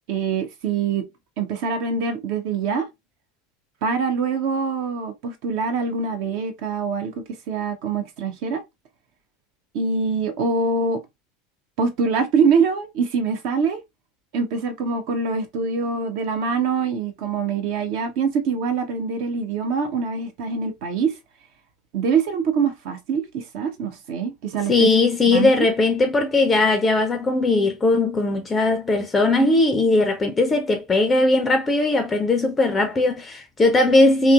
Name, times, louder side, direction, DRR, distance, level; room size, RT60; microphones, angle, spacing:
voice 1, 0.1-1.0 1.4-2.9 3.8-8.6 9.7-11.0 11.8-13.8 14.3-21.1 21.9-24.9 25.3-25.7, right 5 dB, 50° right, 0.5 m, -24 dB
voice 2, 24.7-34.3, left 2 dB, 20° left, 0.4 m, -19 dB
2.8 x 2.4 x 2.2 m
figure-of-eight pair, 80°, 0 cm